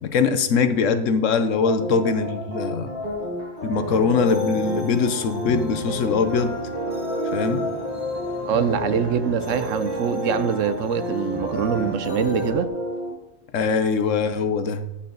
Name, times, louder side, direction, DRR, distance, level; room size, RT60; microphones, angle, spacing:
voice 1, 0.0-2.9 3.6-6.6 7.3-7.6 13.5-14.8, left 5 dB, 80° left, 10 dB, 1.2 m, -22 dB
sound 1, 1.6-12.5, left 3 dB, 60° left, 1.9 m, -34 dB
sound 2, 1.8-13.1, equal, 35° right, 2.7 m, -32 dB
sound 3, 3.7-12.7, right 4 dB, 20° right, 0.9 m, -37 dB
voice 2, 8.4-12.7, right 7 dB, 85° right, 12 dB, 1.1 m, -24 dB
11.5 x 8.6 x 3.9 m, 0.91 s
omnidirectional pair, 1.3 m